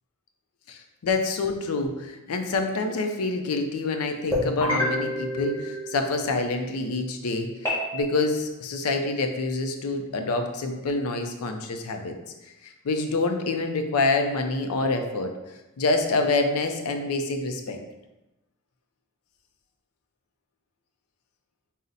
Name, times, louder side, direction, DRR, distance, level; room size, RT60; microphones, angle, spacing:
voice 1, 0.7-12.1 12.6-15.3 15.8-17.8, left 3 dB, 85° left, 5 dB, 0.5 m, -27 dB
sound 1, 4.3-6.4 7.6-8.0, left 1 dB, 10° left, 1.0 m, -28 dB
3.9 x 2.0 x 3.9 m, 1.0 s
head